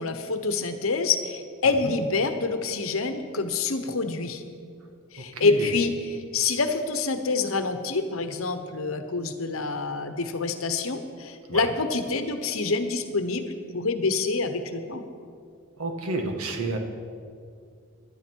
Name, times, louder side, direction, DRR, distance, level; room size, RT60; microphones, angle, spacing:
voice 1, 0.0-4.4 5.1-15.0, left 4 dB, 75° left, 8 dB, 1.0 m, -27 dB
voice 2, 5.3-5.7 11.5-11.7 15.8-16.8, right 2 dB, 85° right, 4 dB, 1.6 m, -30 dB
16.5 x 11.5 x 4.6 m, 2.3 s
head